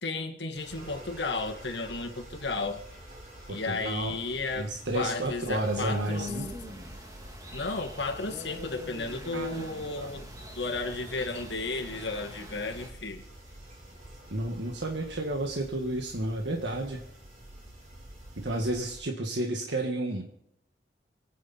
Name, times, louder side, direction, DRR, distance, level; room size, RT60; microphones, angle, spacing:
voice 1, 0.0-2.8 3.5-6.3 7.5-10.3 10.5-13.2, left 3 dB, 80° left, 3 dB, 2.2 m, -33 dB
sound 1, 0.5-19.0, right 1 dB, 50° right, 5.3 m, -48 dB
voice 2, 3.5-4.2 4.5-6.4 9.3-9.6 10.0-10.1 14.3-17.0 18.3-20.3, right 1 dB, 85° right, 2 dB, 1.7 m, -31 dB
sound 2, 5.5-12.9, left 1 dB, 20° right, 2.3 m, -42 dB
26.5 x 9.5 x 4.3 m, 0.76 s
head